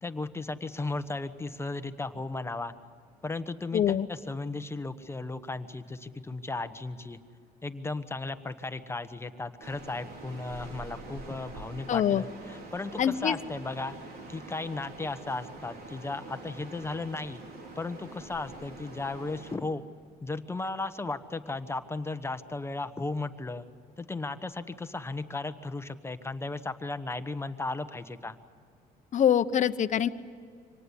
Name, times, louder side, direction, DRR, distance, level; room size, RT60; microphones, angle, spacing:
voice 1, 0.0-2.7 3.2-7.2 7.6-14.0 14.3-17.4 17.7-19.8 20.2-23.7 24.0-28.4, left 3 dB, 15° left, 10 dB, 1.1 m, -35 dB
voice 2, 3.7-4.1 11.9-12.2 13.0-13.4 29.1-30.1, left 9 dB, 45° left, 11 dB, 1.0 m, -24 dB
sound 1, 9.6-19.6, right 3 dB, 65° right, 4.0 m, -45 dB
25.5 x 19.0 x 9.9 m, 2.2 s
cardioid pair, 110°, 17 cm